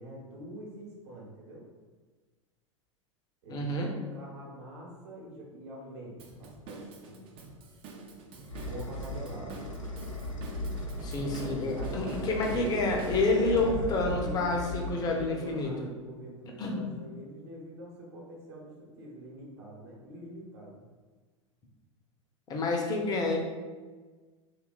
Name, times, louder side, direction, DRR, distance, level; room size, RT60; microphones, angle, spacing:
voice 1, 0.0-1.7 3.4-7.2 8.5-9.7 11.1-12.6 13.3-20.8, right 1 dB, 55° right, -3 dB, 0.9 m, -45 dB
voice 2, 3.5-3.9 11.0-15.9 16.6-16.9 22.5-23.4, left 2 dB, 25° left, 1 dB, 0.5 m, -29 dB
Drum kit / Drum, 6.2-13.7, right 3 dB, 35° right, 0.4 m, -46 dB
sound 1, 7.9-15.8, left 1 dB, 90° left, 0.4 m, -38 dB
2.8 x 2.3 x 2.3 m, 1.4 s
figure-of-eight pair, 90°, 16 cm